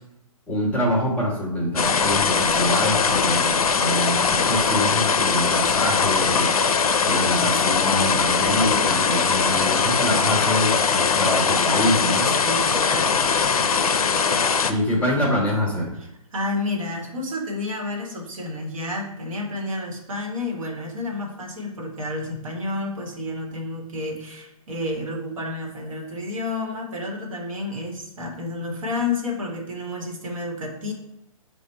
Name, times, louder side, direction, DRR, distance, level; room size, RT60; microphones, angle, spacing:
voice 1, 0.5-6.5 7.1-12.3 14.7-15.9, left 1 dB, 5° left, -3 dB, 0.9 m, -25 dB
sound 1, 1.8-14.7, left 5 dB, 75° left, 0.4 m, -21 dB
voice 2, 12.2-13.3 16.0-30.9, left 2 dB, 65° right, 0 dB, 1.0 m, -30 dB
5.0 x 2.1 x 4.2 m, 0.85 s
figure-of-eight pair, 130°, 19 cm